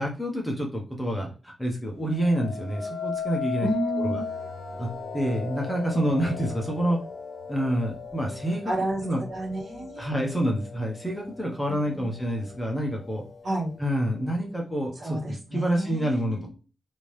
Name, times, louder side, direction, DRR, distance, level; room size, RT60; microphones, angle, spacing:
voice 1, 0.0-3.7 4.0-4.2 4.8-4.9 5.1-7.0 7.5-8.7 9.0-9.2 10.0-13.2 13.8-16.5, equal, 5° left, 0 dB, 0.8 m, -28 dB
sound 1, 2.1-11.2 11.7-12.2, left 6 dB, 75° left, 0.6 m, -36 dB
voice 2, 3.6-4.2 8.7-9.0 9.3-10.1 11.7-12.1 13.4-13.7 15.0-16.5, right 1 dB, 50° right, -2 dB, 1.3 m, -30 dB
3.5 x 2.7 x 3.0 m, 0.36 s
wide cardioid pair, 160°, 0 cm